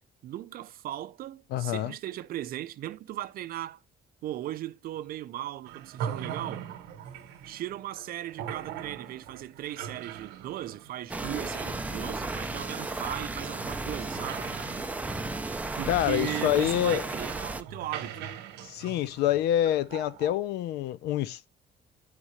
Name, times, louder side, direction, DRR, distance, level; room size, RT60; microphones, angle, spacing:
voice 1, 0.2-3.8 4.2-6.7 7.4-14.9 15.8-18.3, right 13 dB, 60° right, 0.5 m, -37 dB
voice 2, 1.5-1.9 15.9-17.0 18.6-21.5, left 12 dB, 75° left, 0.5 m, -27 dB
sound 1, 5.6-20.3, right 9 dB, 85° right, 0.9 m, -42 dB
sound 2, 11.1-17.6, right 2 dB, 10° right, 0.5 m, -34 dB
10.5 x 3.6 x 3.1 m
cardioid pair, 110°, 17 cm